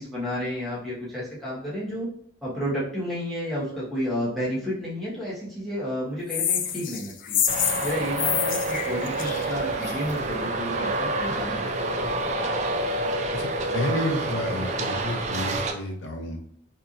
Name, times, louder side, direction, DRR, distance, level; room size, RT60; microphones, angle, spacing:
voice 1, 0.0-2.1 2.4-7.4 7.8-12.2, equal, ahead, -9 dB, 1.2 m, -31 dB
sound 1, 6.3-10.1, left 9 dB, 45° left, 0.3 m, -27 dB
Traffic noise roadway noise, 7.5-15.7, right 2 dB, 40° right, 0.4 m, -28 dB
voice 2, 13.3-16.4, left 1 dB, 85° left, 3 dB, 0.6 m, -30 dB
4.4 x 2.8 x 2.5 m, 0.65 s
head